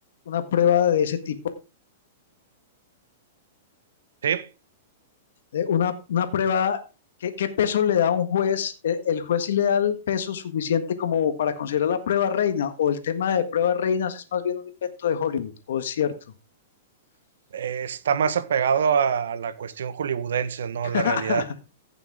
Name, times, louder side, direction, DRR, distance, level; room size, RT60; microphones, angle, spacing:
voice 1, 0.3-1.4 5.5-6.8 7.2-16.1 20.9-21.6, left 8 dB, 75° left, 1.6 m, -24 dB
voice 2, 17.5-21.6, right 7 dB, 85° right, 1.3 m, -25 dB
15.5 x 6.9 x 3.7 m
hypercardioid pair, 150°, 0 cm